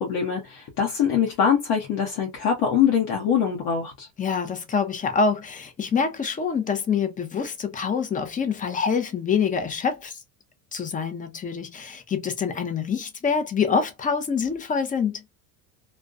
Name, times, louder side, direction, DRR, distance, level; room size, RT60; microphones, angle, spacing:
voice 1, 0.0-4.1, left 7 dB, 60° left, 0.8 m, -23 dB
voice 2, 4.2-10.2 10.7-15.2, left 6 dB, 20° left, 0.5 m, -26 dB
2.3 x 2.2 x 2.4 m
supercardioid pair, 110°, 41 cm